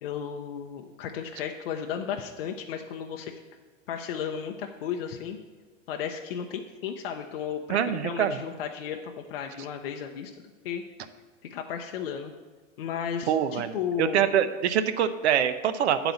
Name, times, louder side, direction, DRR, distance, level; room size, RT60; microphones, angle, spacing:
voice 1, 0.0-3.4 3.9-5.4 5.9-10.3 10.6-10.8 11.5-12.3 12.8-14.3, left 8 dB, 50° left, 3 dB, 0.6 m, -34 dB
voice 2, 7.7-8.4 13.3-16.1, right 9 dB, 60° right, 11 dB, 0.6 m, -25 dB
9.0 x 4.0 x 7.0 m, 1.4 s
supercardioid pair, 180°, 38 cm